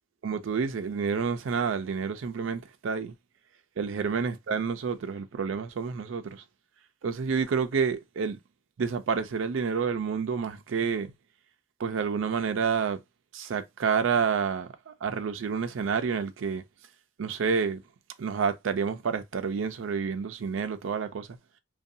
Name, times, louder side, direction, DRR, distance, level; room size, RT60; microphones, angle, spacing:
voice 1, 0.2-3.1 3.8-6.4 7.0-8.4 8.8-11.1 11.8-13.0 13.3-16.6 17.2-17.8 18.2-21.3, right 5 dB, 75° right, 0.4 m, -29 dB
2.5 x 2.2 x 2.6 m
head